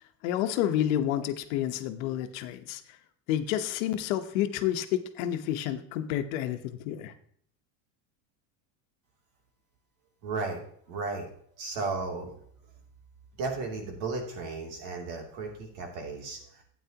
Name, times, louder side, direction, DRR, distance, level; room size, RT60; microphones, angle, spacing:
voice 1, 0.2-2.8 3.3-7.1, left 11 dB, 80° left, 8 dB, 1.1 m, -29 dB
voice 2, 10.2-10.6 10.9-11.3 11.6-12.3 13.4-16.6, right 3 dB, 65° right, 1 dB, 3.0 m, -34 dB
12.5 x 9.0 x 2.9 m, 0.62 s
cardioid pair, 175°, 40 cm